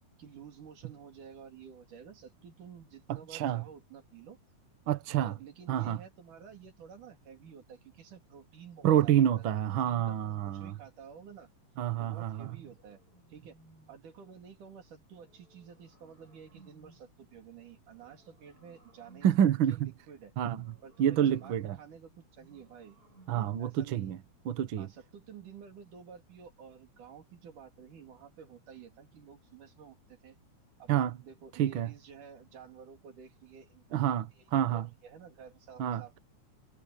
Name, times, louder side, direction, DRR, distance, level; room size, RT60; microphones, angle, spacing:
voice 1, 0.2-4.4 5.1-9.3 9.9-11.5 12.0-13.0 13.3-13.6 13.9-20.3 20.8-23.0 23.3-24.1 24.8-30.4 30.8-30.9 31.2-34.4 34.7-36.2, right 7 dB, 80° right, 4.5 m, -51 dB
voice 2, 3.1-3.6 4.9-5.4 5.7-6.0 8.8-10.8 11.8-12.6 19.2-19.9 20.4-21.8 23.3-24.2 24.4-24.9 30.9-31.2 31.6-31.9 33.9-34.9 35.8-36.0, right 10 dB, 60° right, 1.4 m, -28 dB
sound 1, 12.7-14.2 15.1-17.2 17.9-19.6 20.5-21.9 22.4-23.7, right 2 dB, 45° left, 7.8 m, -63 dB
omnidirectional pair, 3.6 m